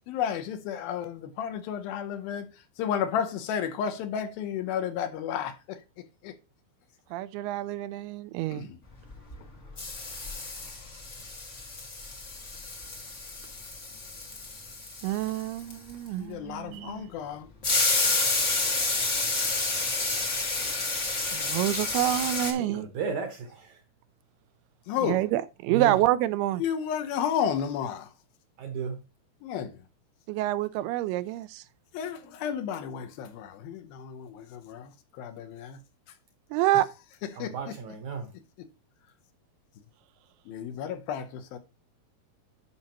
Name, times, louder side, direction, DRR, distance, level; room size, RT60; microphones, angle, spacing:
voice 1, 0.1-2.5 2.8-5.8 6.2-6.3 8.5-8.8 16.2-17.5 24.9-25.2 26.6-28.1 29.4-29.7 31.9-34.9 35.2-35.8 37.4-37.5 38.6-38.7 40.5-41.6, left 8 dB, 75° left, 2.5 m, -32 dB
voice 2, 7.1-8.7 15.0-17.0 21.3-22.9 25.0-26.6 30.3-31.6 36.5-36.9, right 14 dB, 85° right, 2.5 m, -27 dB
sound 1, 9.1-9.5 9.8-16.1 17.6-22.5, left 3 dB, 55° left, 0.7 m, -30 dB
voice 3, 22.6-23.7 25.7-25.9 28.6-29.0 37.4-38.3, right 6 dB, 65° right, 2.0 m, -34 dB
11.5 x 5.6 x 2.9 m
omnidirectional pair, 4.5 m